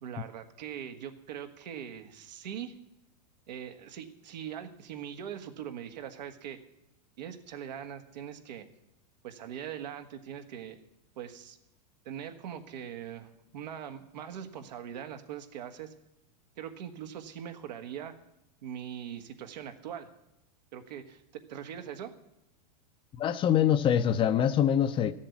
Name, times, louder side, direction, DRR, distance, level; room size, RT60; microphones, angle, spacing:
voice 1, 0.0-2.7 3.5-6.6 7.2-8.7 9.2-10.8 11.2-11.6 12.0-15.9 16.6-18.1 18.6-20.1 20.7-22.1, right 9 dB, 85° right, 7 dB, 1.5 m, -41 dB
voice 2, 23.2-25.1, left 9 dB, 25° left, 13 dB, 0.5 m, -24 dB
13.0 x 7.4 x 8.4 m, 0.86 s
supercardioid pair, 140°, 21 cm